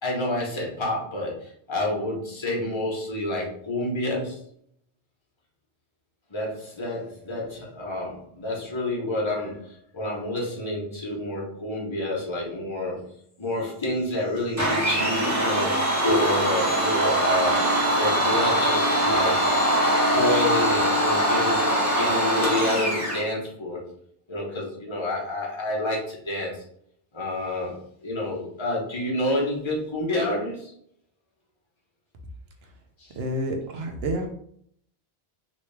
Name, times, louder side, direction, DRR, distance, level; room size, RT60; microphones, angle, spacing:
voice 1, 0.0-4.4 6.3-13.0 13.4-23.8 24.3-26.6 27.1-30.7 33.0-33.1, left 1 dB, 30° left, -3 dB, 0.9 m, -29 dB
Domestic sounds home sounds, 14.6-23.2, right 1 dB, 15° right, 1.0 m, -22 dB
voice 2, 33.2-34.3, right 1 dB, 70° right, 3 dB, 0.9 m, -29 dB
3.0 x 2.7 x 3.2 m, 0.67 s
omnidirectional pair, 1.1 m